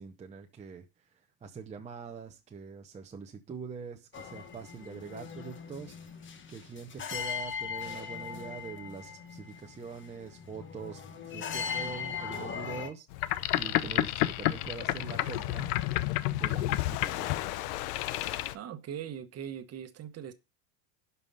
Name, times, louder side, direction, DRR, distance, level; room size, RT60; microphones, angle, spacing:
voice 1, 0.0-6.1 6.5-15.8 16.3-17.4, right 5 dB, 15° right, 0.8 m, -44 dB
sound 1, 4.1-12.9, left 6 dB, 25° left, 1.2 m, -39 dB
Boat Water vehicle, 13.1-18.5, left 15 dB, 80° left, 0.9 m, -30 dB
voice 2, 18.5-20.3, right 9 dB, 35° right, 1.2 m, -40 dB
11.5 x 5.6 x 5.4 m
cardioid pair, 150°, 45 cm